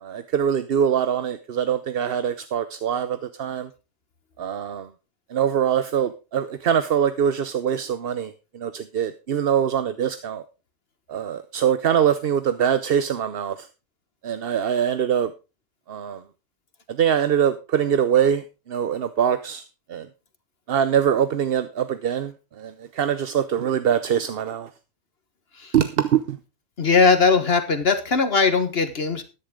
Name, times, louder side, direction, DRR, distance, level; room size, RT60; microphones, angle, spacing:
voice 1, 0.0-3.7 4.4-4.9 5.3-8.3 8.6-10.4 11.1-13.6 14.2-15.3 15.9-16.2 17.0-18.4 18.7-19.6 19.9-20.1 20.7-22.3 22.6-24.7 25.7-26.4, right 8 dB, 50° right, 12 dB, 0.8 m, -23 dB
voice 2, 26.8-29.2, left 4 dB, 50° left, 10 dB, 1.5 m, -19 dB
13.0 x 10.5 x 3.7 m, 0.31 s
omnidirectional pair, 1.4 m